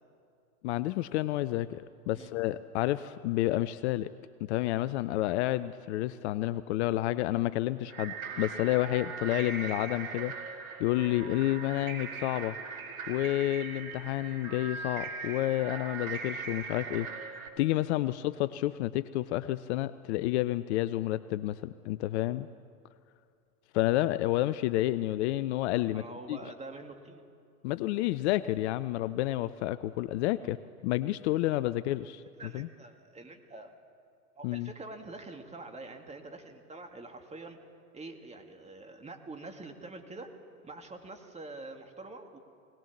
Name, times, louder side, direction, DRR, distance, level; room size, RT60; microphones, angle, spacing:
voice 1, 0.6-4.1 4.4-10.3 10.8-12.6 13.1-17.3 17.6-22.5 23.7-26.0 26.3-26.4 27.6-30.6 30.8-32.2 32.5-32.7 34.4-34.7, left 15 dB, 50° left, 15 dB, 0.6 m, -30 dB
sound 1, 7.9-17.5, right 5 dB, 65° right, 2.2 m, -40 dB
voice 2, 25.9-27.2 30.4-30.6 32.4-33.7 34.4-37.6 37.9-40.3 40.6-42.4, right 2 dB, 15° right, 4 dB, 2.1 m, -45 dB
20.5 x 18.5 x 7.3 m, 2.3 s
figure-of-eight pair, 90°, 45 cm